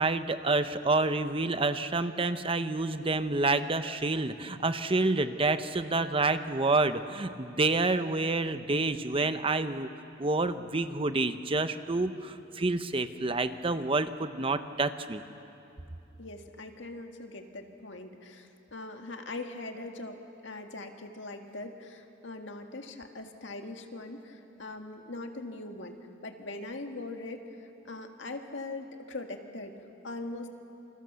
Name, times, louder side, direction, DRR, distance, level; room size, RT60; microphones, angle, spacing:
voice 1, 0.0-9.9 10.2-15.2, right 3 dB, 25° right, 10 dB, 0.8 m, -28 dB
voice 2, 16.2-29.8 30.0-30.5, left 2 dB, 65° left, 4 dB, 2.0 m, -41 dB
28.0 x 28.0 x 6.9 m, 2.8 s
head